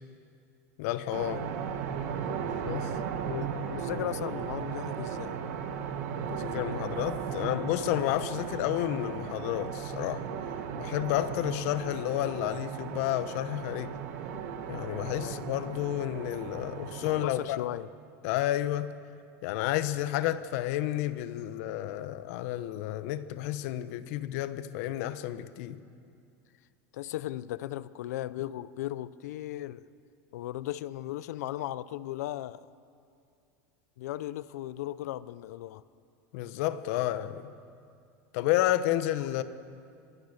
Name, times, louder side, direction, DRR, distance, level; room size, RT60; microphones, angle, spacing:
voice 1, 0.8-1.5 2.6-2.9 6.1-10.3 10.8-13.9 14.7-17.6 18.2-18.9 19.4-25.8 36.3-37.5 38.3-39.4, left 13 dB, 65° left, 1.1 m, -31 dB
sound 1, 1.1-17.2, right 7 dB, 75° right, 2.4 m, -36 dB
voice 2, 3.3-5.4 15.2-15.4 17.0-17.9 26.9-29.8 30.3-32.6 34.0-35.8, left 14 dB, 85° left, 0.7 m, -36 dB
24.5 x 20.5 x 6.7 m
supercardioid pair, 140°, 8 cm